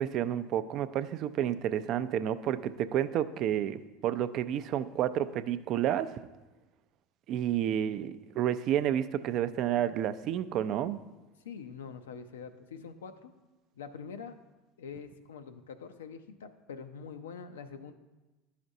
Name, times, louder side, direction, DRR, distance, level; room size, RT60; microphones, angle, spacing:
voice 1, 0.0-6.1 7.3-11.0, right 10 dB, 55° right, 13 dB, 0.3 m, -30 dB
voice 2, 11.4-13.3 13.7-14.3 14.8-17.9, left 6 dB, 85° left, 9 dB, 0.4 m, -44 dB
11.0 x 5.0 x 2.7 m, 1.1 s
hypercardioid pair, 85°, 0 cm